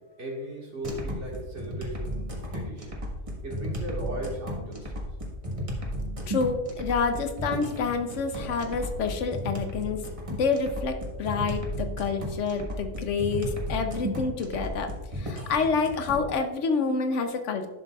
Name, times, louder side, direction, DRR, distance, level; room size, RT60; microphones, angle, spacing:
voice 1, 0.0-3.0 3.4-5.0, right 1 dB, 70° right, -2 dB, 2.1 m, -37 dB
sound 1, 0.8-16.3, equal, 30° right, 1.4 m, -34 dB
voice 2, 6.3-10.0 10.3-17.7, left 4 dB, 80° left, 7 dB, 1.2 m, -28 dB
11.0 x 6.7 x 2.4 m, 1.1 s
omnidirectional pair, 1.2 m